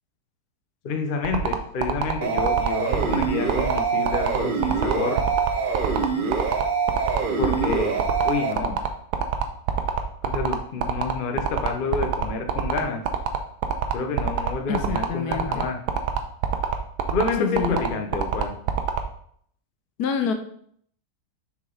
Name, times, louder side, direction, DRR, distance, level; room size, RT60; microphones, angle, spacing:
voice 1, 0.8-5.2 7.4-8.8 10.2-13.0 13.9-15.8 17.1-18.6, left 4 dB, 40° left, 4 dB, 0.8 m, -28 dB
sound 1, 1.2-19.0, right 8 dB, 75° right, 1.2 m, -24 dB
sound 2, 2.2-8.5, right 5 dB, 60° right, 0.5 m, -25 dB
voice 2, 14.7-15.7 17.4-18.0 20.0-20.3, left 7 dB, 75° left, 7 dB, 1.1 m, -27 dB
6.4 x 4.9 x 3.9 m, 0.63 s
omnidirectional pair, 1.7 m